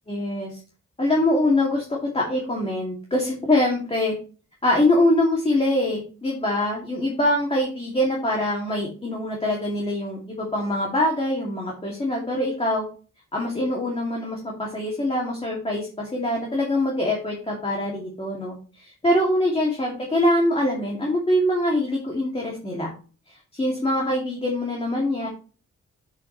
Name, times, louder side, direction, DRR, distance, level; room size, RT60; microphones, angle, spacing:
voice 1, 0.1-0.5 1.0-4.1 4.6-12.9 13.3-22.9 23.3-25.3, left 1 dB, 20° left, -2 dB, 2.4 m, -24 dB
8.2 x 7.8 x 3.1 m, 0.37 s
wide cardioid pair, 135°, 31 cm